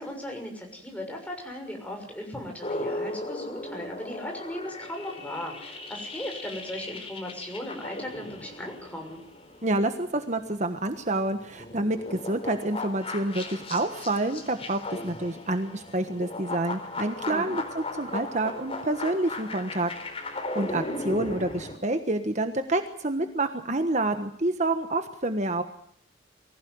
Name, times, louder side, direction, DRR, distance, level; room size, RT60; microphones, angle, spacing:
voice 1, 0.0-9.2 17.2-17.5, left 1 dB, 10° left, 1 dB, 6.5 m, -37 dB
sound 1, 2.6-10.5 10.9-21.8, left 2 dB, 30° left, 4.1 m, -37 dB
voice 2, 9.6-19.9 20.5-25.6, right 2 dB, 40° right, 8 dB, 1.4 m, -28 dB
23.5 x 16.0 x 9.6 m, 0.66 s
head